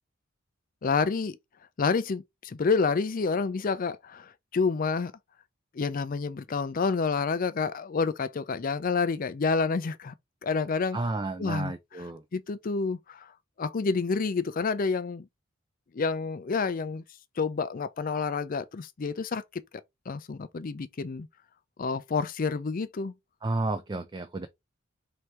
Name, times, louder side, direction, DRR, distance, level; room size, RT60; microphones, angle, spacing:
voice 1, 0.8-1.4 1.8-5.1 5.7-10.1 10.4-11.0 11.4-11.7 12.3-13.3 13.6-15.2 15.9-17.0 17.4-19.4 20.1-21.3 21.8-23.1, left 4 dB, 45° left, 0.4 m, -28 dB
voice 2, 10.9-12.2 23.4-24.5, right 2 dB, 20° right, 0.4 m, -31 dB
3.2 x 2.8 x 4.6 m
head